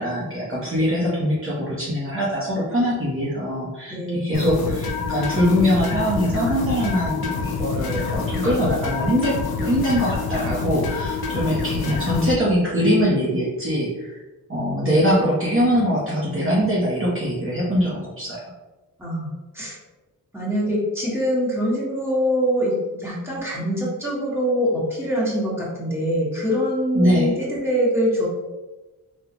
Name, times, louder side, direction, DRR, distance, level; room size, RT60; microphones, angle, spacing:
voice 1, 0.0-14.2 14.5-18.4 26.9-27.3, equal, 35° right, -7 dB, 0.9 m, -22 dB
voice 2, 3.9-4.3 19.0-19.8 20.3-28.3, equal, 5° right, -7 dB, 1.3 m, -24 dB
sound 1, 4.3-12.3, left 4 dB, 85° left, 0.6 m, -27 dB
3.7 x 2.4 x 2.9 m, 1.1 s
wide cardioid pair, 95°, 36 cm